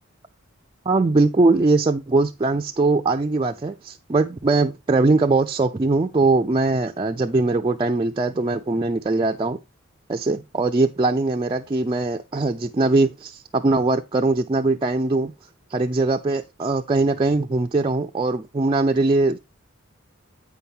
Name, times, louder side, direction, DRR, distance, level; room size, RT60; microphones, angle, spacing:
voice 1, 0.9-9.6 10.1-15.3 15.7-19.4, right 3 dB, 25° right, 0.4 m, -21 dB
8.4 x 5.7 x 3.5 m
head